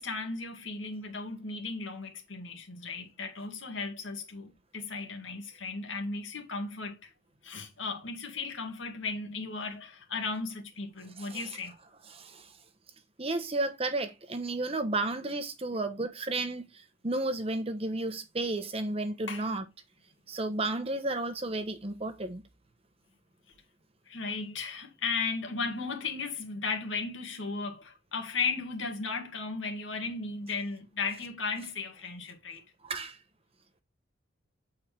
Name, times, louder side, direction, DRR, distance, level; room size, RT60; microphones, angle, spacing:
voice 1, 0.0-7.1 7.4-11.8 19.3-19.5 24.1-32.6, left 4 dB, 70° left, 2.0 m, -36 dB
voice 2, 12.1-12.5 13.2-16.7 17.0-19.6 20.3-22.4 32.8-33.2, right 2 dB, 30° right, 1.0 m, -32 dB
8.5 x 4.5 x 3.4 m
head